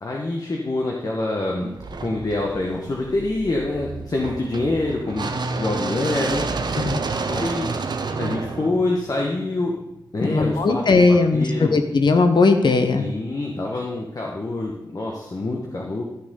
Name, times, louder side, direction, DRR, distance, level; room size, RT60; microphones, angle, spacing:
voice 1, 0.0-1.7 2.0-6.8 7.3-7.7 8.2-9.7 10.1-11.8 13.0-16.0, left 2 dB, 50° left, -1 dB, 1.4 m, -26 dB
sound 1, 1.8-9.8, right 4 dB, 65° right, 0.8 m, -30 dB
voice 2, 10.2-13.0, left 3 dB, 70° left, 7 dB, 1.0 m, -18 dB
13.0 x 6.4 x 3.9 m, 0.87 s
wide cardioid pair, 70°, 8 cm